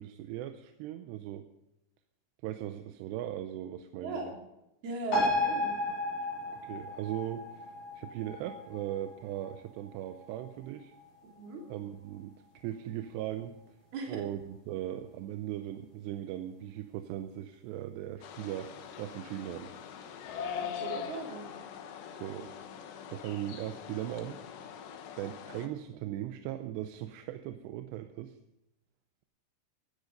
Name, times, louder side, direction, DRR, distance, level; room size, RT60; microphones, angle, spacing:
voice 1, 0.0-1.5 2.4-4.3 6.5-10.9 11.7-13.8 14.1-18.7 19.0-19.7 22.1-22.5 23.1-24.4 25.2-28.4, right 12 dB, 85° right, 8 dB, 2.9 m, -39 dB
voice 2, 4.0-4.3 4.8-5.8 11.4-11.6 13.9-14.2 20.7-21.4, right 3 dB, 65° right, 0 dB, 4.9 m, -38 dB
sound 1, 5.1-12.1 12.4-12.5, left 1 dB, 60° left, 6.7 m, -35 dB
sound 2, 18.2-25.7, left 7 dB, 85° left, 3.3 m, -42 dB
15.5 x 13.0 x 5.3 m, 0.90 s
omnidirectional pair, 4.8 m